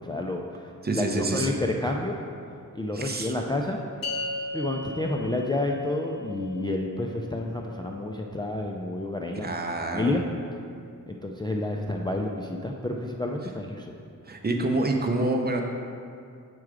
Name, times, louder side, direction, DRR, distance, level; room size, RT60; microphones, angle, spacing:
voice 1, 0.0-2.1 2.7-3.8 4.5-9.5 9.9-10.2 11.1-14.0, left 2 dB, 15° left, 0 dB, 0.3 m, -30 dB
voice 2, 0.8-1.5 2.9-3.3 9.3-10.1 14.2-15.6, right 2 dB, 30° right, 3 dB, 0.7 m, -27 dB
sound 1, 4.0-10.6, left 2 dB, 90° left, 0.8 m, -39 dB
7.7 x 4.7 x 4.8 m, 2.4 s
wide cardioid pair, 130°, 33 cm